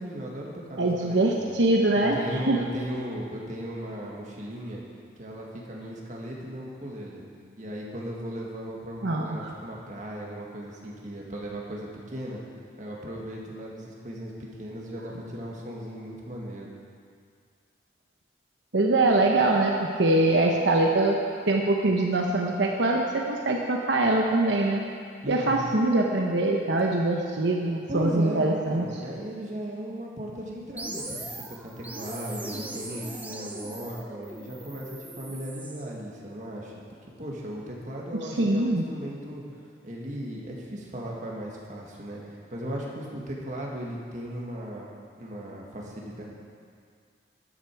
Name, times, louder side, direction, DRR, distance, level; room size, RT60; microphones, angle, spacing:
voice 1, 0.0-1.6 1.9-4.8 5.2-7.2 7.6-12.4 12.8-16.7 25.2-25.7 27.9-36.7 37.2-39.4 39.8-44.9 45.2-46.2, equal, 40° right, -3 dB, 1.9 m, -37 dB
voice 2, 0.8-2.2 2.5-2.6 9.0-9.5 18.7-21.2 21.5-24.8 25.3-28.9 38.4-38.8, right 2 dB, 75° right, 0 dB, 0.9 m, -23 dB
sound 1, 30.8-35.9, right 2 dB, 10° right, 0.6 m, -39 dB
13.5 x 10.0 x 4.7 m, 2.2 s
head